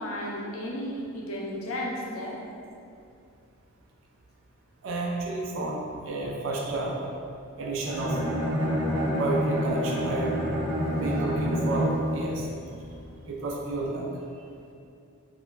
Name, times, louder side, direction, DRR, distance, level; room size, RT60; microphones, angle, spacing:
voice 1, 0.0-2.4, left 1 dB, 65° left, -2 dB, 0.4 m, -33 dB
voice 2, 4.8-7.0 7.6-8.2 9.2-10.5 10.9-12.5 13.3-14.1, right 2 dB, 60° right, -2 dB, 0.3 m, -31 dB
Bowed string instrument, 7.9-12.3, equal, 85° right, 0.7 m, -27 dB
2.2 x 2.1 x 3.1 m, 2.5 s
head